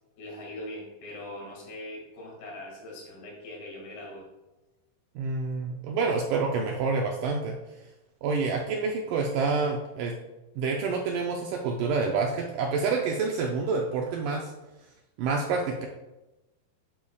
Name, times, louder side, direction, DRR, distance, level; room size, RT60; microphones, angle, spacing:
voice 1, 0.2-4.2, left 1 dB, 80° left, -2 dB, 3.9 m, -41 dB
voice 2, 5.2-7.6 8.2-10.1 10.6-14.5 15.2-15.9, right 4 dB, 80° right, 0 dB, 1.9 m, -28 dB
10.0 x 6.0 x 2.3 m, 1.0 s
omnidirectional pair, 4.3 m